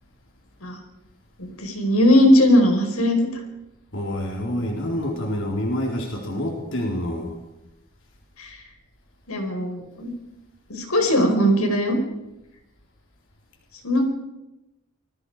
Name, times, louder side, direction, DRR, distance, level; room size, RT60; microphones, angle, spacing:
voice 1, 1.4-3.2 8.4-8.6 9.3-10.1 10.7-12.0 13.8-14.0, left 1 dB, 85° left, 4 dB, 5.2 m, -19 dB
voice 2, 3.9-7.4, left 1 dB, 60° left, 0 dB, 4.0 m, -27 dB
28.0 x 21.0 x 5.0 m, 0.95 s
head